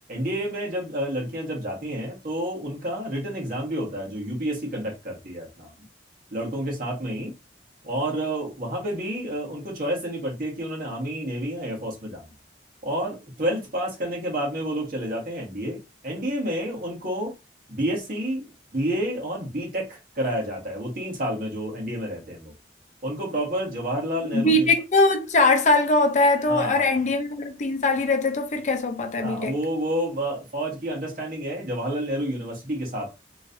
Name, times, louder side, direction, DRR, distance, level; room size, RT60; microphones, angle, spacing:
voice 1, 0.1-5.7 6.3-7.3 7.8-12.2 12.8-17.3 17.7-18.5 18.7-22.5 23.0-24.7 26.5-26.9 29.2-33.1, right 1 dB, 50° right, 1.5 m, -29 dB
voice 2, 24.3-29.5, left 2 dB, 40° left, 0.6 m, -21 dB
3.2 x 3.1 x 2.7 m
head